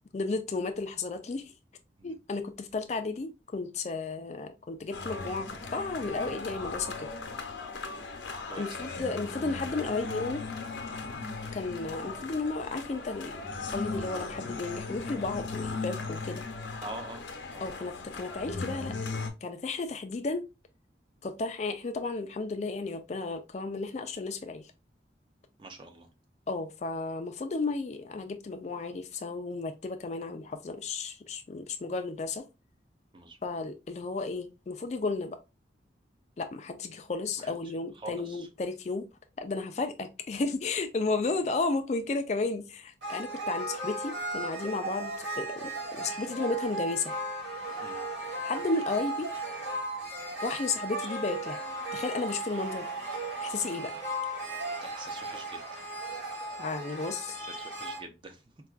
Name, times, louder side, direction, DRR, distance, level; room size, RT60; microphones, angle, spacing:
voice 1, 0.1-1.5 2.0-7.1 8.6-10.5 11.5-13.3 13.7-16.4 17.6-18.9 19.4-20.5 21.2-24.7 26.5-32.4 33.4-35.4 36.4-39.1 39.4-47.1 48.4-49.3 50.4-51.6 51.9-52.9 53.4-53.9 56.6-57.4, left 3 dB, 35° left, 0.4 m, -33 dB
sound 1, 4.9-19.3, left 3 dB, 85° left, 0.7 m, -37 dB
voice 2, 8.4-9.1 16.8-17.6 25.6-26.1 33.1-33.4 37.4-37.5 37.9-38.5 47.8-48.0 54.8-55.6 57.0-58.4, right 2 dB, 25° right, 0.5 m, -45 dB
sound 2, 43.0-58.0, right 2 dB, 80° right, 2.1 m, -36 dB
4.4 x 2.3 x 2.3 m
head